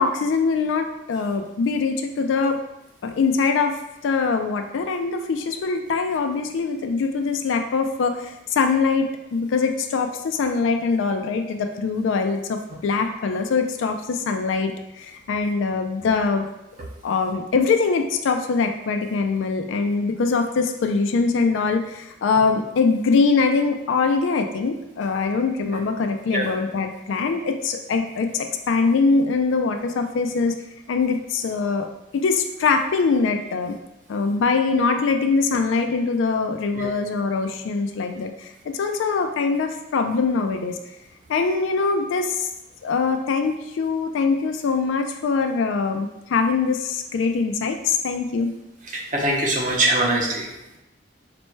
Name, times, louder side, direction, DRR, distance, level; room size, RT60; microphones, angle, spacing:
voice 1, 0.0-2.6 3.0-3.8 4.0-16.5 17.0-30.6 30.9-31.9 32.1-33.8 34.1-40.8 41.3-42.5 42.8-48.5, left 4 dB, 90° left, 5 dB, 0.4 m, -23 dB
voice 2, 48.9-50.5, right 1 dB, 40° right, -1 dB, 0.7 m, -22 dB
4.2 x 2.1 x 4.4 m, 0.90 s
head